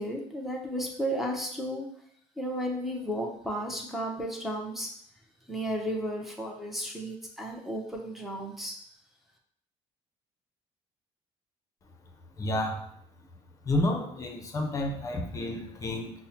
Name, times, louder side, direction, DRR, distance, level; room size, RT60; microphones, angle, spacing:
voice 1, 0.0-1.8 2.4-4.9 5.5-8.7, equal, ahead, 0 dB, 0.7 m, -33 dB
voice 2, 12.4-12.9 13.7-16.1, left 1 dB, 30° left, 5 dB, 0.6 m, -30 dB
5.3 x 2.1 x 2.9 m, 0.66 s
cardioid pair, 110°, 11 cm